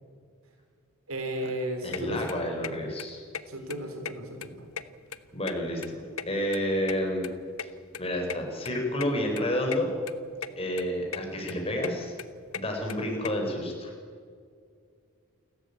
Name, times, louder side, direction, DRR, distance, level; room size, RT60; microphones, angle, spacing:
voice 1, 1.1-2.5 3.5-4.7, right 1 dB, 85° right, 4 dB, 3.9 m, -34 dB
voice 2, 1.8-3.2 5.3-7.3 7.6-7.7 8.0-9.9 10.6-12.1 12.5-13.9, left 1 dB, 25° left, 1 dB, 5.1 m, -30 dB
sound 1, 1.9-2.0 2.3-2.7 3.0-3.1 3.3-3.4 3.7-4.5 4.7-5.9 6.2-7.7 7.9-8.0 8.3-8.4 8.7-8.8 9.0-9.1 9.4-9.8 10.1-10.5 10.8-11.2 11.5-13.3, left 7 dB, 85° left, 1.1 m, -36 dB
29.0 x 13.5 x 8.6 m, 2.2 s
head